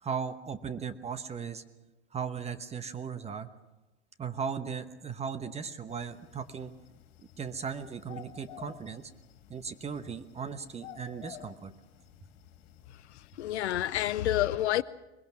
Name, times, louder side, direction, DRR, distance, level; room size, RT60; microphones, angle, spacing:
voice 1, 0.0-1.6 2.1-3.5 4.2-6.7 7.4-9.1 9.5-11.7, right 6 dB, 20° right, 1.1 m, -37 dB
sound 1, 5.9-14.2, left 12 dB, 55° left, 2.7 m, -53 dB
voice 2, 13.1-14.8, left 13 dB, 75° left, 0.6 m, -29 dB
22.0 x 21.5 x 6.1 m
hypercardioid pair, 100°, 34 cm